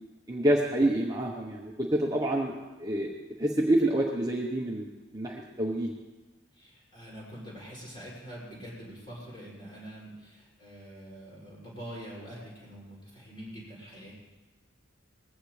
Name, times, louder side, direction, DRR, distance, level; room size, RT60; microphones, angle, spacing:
voice 1, 0.3-2.5 2.8-3.1 3.4-5.9, right 1 dB, 15° right, -1 dB, 1.0 m, -27 dB
voice 2, 6.5-14.1, equal, 25° left, -6 dB, 6.3 m, -45 dB
20.5 x 15.5 x 3.3 m, 1.2 s
head